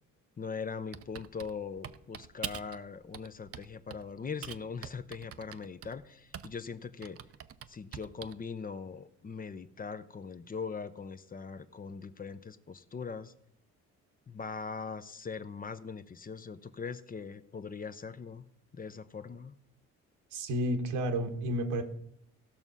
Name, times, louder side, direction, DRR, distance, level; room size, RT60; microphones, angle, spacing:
voice 1, 0.4-7.2 7.7-13.3 14.3-18.5 18.7-19.5, left 5 dB, 30° left, 12 dB, 0.7 m, -41 dB
Typing, 0.9-2.8 3.1-4.1 4.4-6.7 7.0-8.4, right 9 dB, 50° right, 0.7 m, -44 dB
voice 2, 20.3-21.8, equal, 85° right, 5 dB, 1.6 m, -31 dB
16.5 x 6.1 x 5.5 m, 0.70 s
cardioid pair, 90°, 30 cm